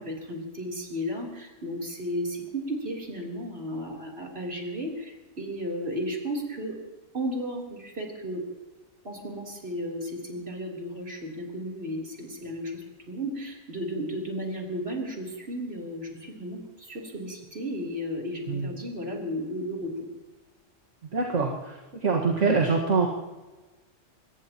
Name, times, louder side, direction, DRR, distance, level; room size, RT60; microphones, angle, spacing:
voice 1, 0.0-6.8 7.1-8.5 9.0-19.9, equal, 50° right, -1 dB, 3.7 m, -34 dB
voice 2, 21.1-21.8 22.0-23.1, right 4 dB, 70° right, -1 dB, 2.0 m, -24 dB
24.0 x 20.5 x 3.0 m, 1.2 s
omnidirectional pair, 1.3 m